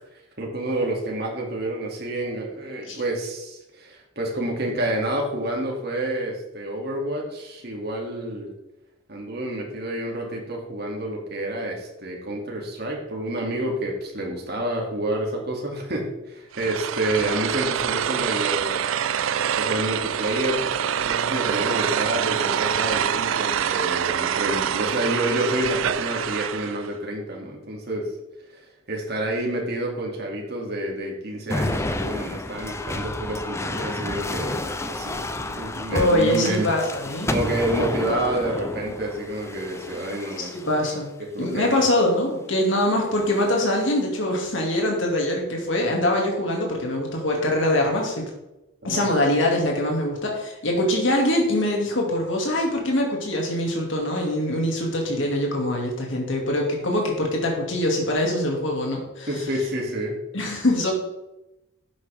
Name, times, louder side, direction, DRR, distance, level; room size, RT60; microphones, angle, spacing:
voice 1, 0.1-8.5 9.1-18.9 19.5-28.1 28.5-36.8 37.3-40.5 40.8-40.9 41.2-41.8 48.8-49.0 59.3-60.2, right 1 dB, 55° right, -1 dB, 2.6 m, -29 dB
sound 1, 16.5-26.9, right 8 dB, 85° right, 0.5 m, -25 dB
sound 2, 31.5-40.9 41.6-42.1 43.2-43.9, left 2 dB, 15° left, 0.5 m, -31 dB
voice 2, 35.9-37.3 40.4-41.1 41.4-48.3 48.8-59.3 60.3-60.9, left 1 dB, 70° left, 0 dB, 2.4 m, -23 dB
11.5 x 8.4 x 3.5 m, 0.94 s
head